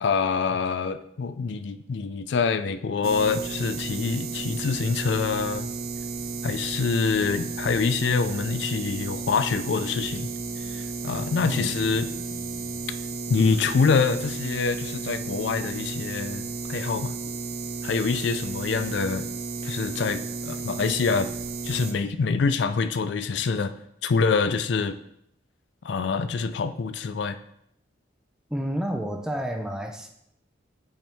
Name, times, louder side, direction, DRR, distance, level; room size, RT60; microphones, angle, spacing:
voice 1, 0.0-5.7 6.4-10.3 10.6-12.1 13.3-17.1 17.8-19.3 19.6-21.3 21.6-23.7 24.0-25.0 25.8-27.4, left 5 dB, 65° left, 11 dB, 0.4 m, -25 dB
sound 1, 3.0-21.9, right 4 dB, 50° right, 0.6 m, -33 dB
voice 2, 28.5-30.1, equal, 5° right, 3 dB, 0.5 m, -29 dB
8.6 x 4.4 x 3.4 m, 0.74 s
head